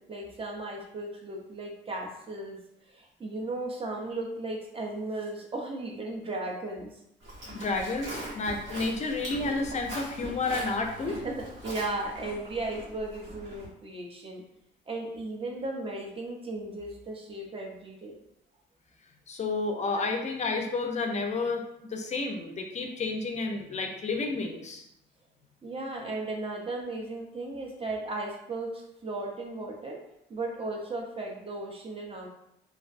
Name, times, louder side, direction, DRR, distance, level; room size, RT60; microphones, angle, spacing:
voice 1, 0.0-2.6 2.9-7.0 11.0-14.4 14.9-18.2 25.6-30.0 30.3-32.3, right 2 dB, 30° right, 0 dB, 0.6 m, -36 dB
Livestock farm animals working animals, 7.2-13.7, right 1 dB, 75° right, 1.2 m, -41 dB
voice 2, 7.5-11.2 19.3-21.6 21.9-24.8, left 3 dB, 35° left, 3 dB, 0.4 m, -31 dB
2.3 x 2.0 x 2.5 m, 0.80 s
cardioid pair, 90°, 20 cm